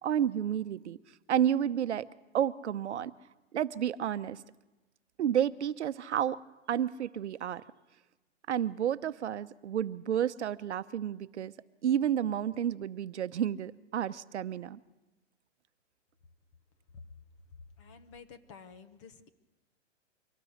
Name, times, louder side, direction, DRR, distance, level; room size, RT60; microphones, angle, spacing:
voice 1, 0.0-1.0 1.3-2.1 2.3-3.1 3.5-4.4 5.2-6.4 6.7-7.6 8.5-11.5 11.8-14.8, right 10 dB, 65° right, 13 dB, 0.9 m, -30 dB
voice 2, 17.8-19.3, left 5 dB, 25° left, 11 dB, 0.9 m, -51 dB
24.0 x 17.5 x 6.5 m, 1.1 s
hypercardioid pair, 165°, 37 cm